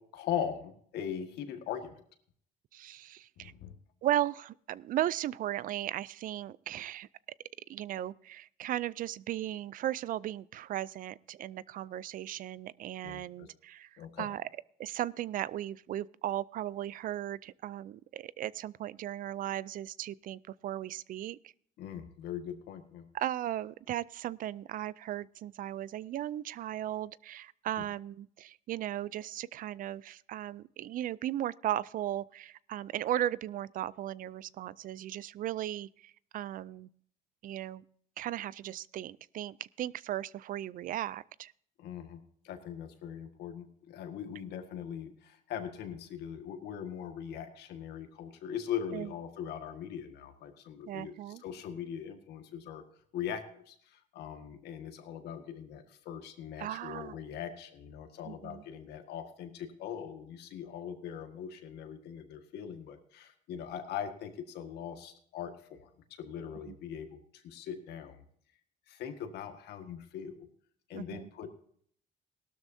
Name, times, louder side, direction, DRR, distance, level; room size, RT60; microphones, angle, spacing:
voice 1, 0.1-2.0 3.4-3.8 13.0-13.5 14.0-14.3 21.8-23.1 41.8-51.1 51.4-52.8 53.1-65.9 66.2-68.2 68.9-70.5 70.9-71.5, left 8 dB, 80° left, 6 dB, 1.7 m, -40 dB
voice 2, 2.7-3.5 4.0-7.1 7.7-14.5 14.8-21.5 23.1-36.9 37.4-37.8 38.2-41.5 48.9-49.1 50.9-51.4 56.6-57.1 58.2-58.6 66.7-66.8 70.9-71.3, right 12 dB, 55° right, 21 dB, 0.4 m, -36 dB
17.5 x 12.5 x 2.7 m, 0.62 s
cardioid pair, 110°, 17 cm